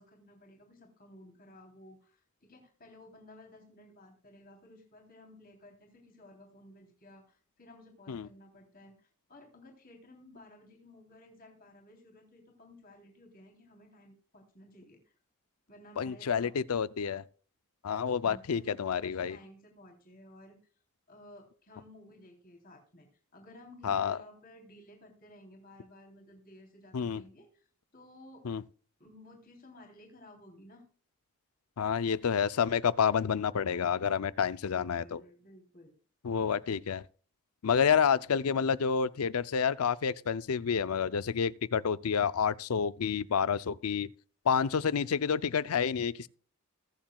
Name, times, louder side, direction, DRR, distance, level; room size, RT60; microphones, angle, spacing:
voice 1, 0.0-8.9 9.3-15.0 15.7-16.5 18.2-20.6 21.1-23.1 23.3-27.6 27.9-28.4 29.0-30.8 34.6-35.9, left 1 dB, 40° left, 3.3 m, -55 dB
voice 2, 16.0-17.2 17.8-19.4 23.8-24.2 26.9-27.2 28.4-28.6 31.8-35.2 36.2-37.0 37.6-44.1 44.5-46.3, left 7 dB, 85° left, 0.5 m, -29 dB
21.5 x 7.3 x 2.3 m
head